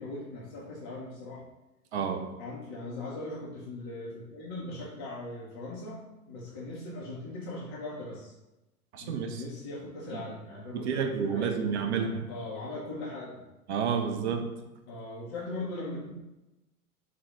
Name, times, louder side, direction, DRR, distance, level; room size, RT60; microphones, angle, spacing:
voice 1, 0.0-1.4 2.4-6.0 6.2-8.3 9.0-11.7 12.3-13.4 14.9-16.1, left 2 dB, 20° left, -6 dB, 0.3 m, -39 dB
voice 2, 1.9-2.3 8.9-9.4 10.1-10.2 10.7-12.3 13.7-14.6, right 6 dB, 50° right, 6 dB, 0.5 m, -30 dB
3.7 x 2.1 x 2.9 m, 0.98 s
figure-of-eight pair, 105°, 46 cm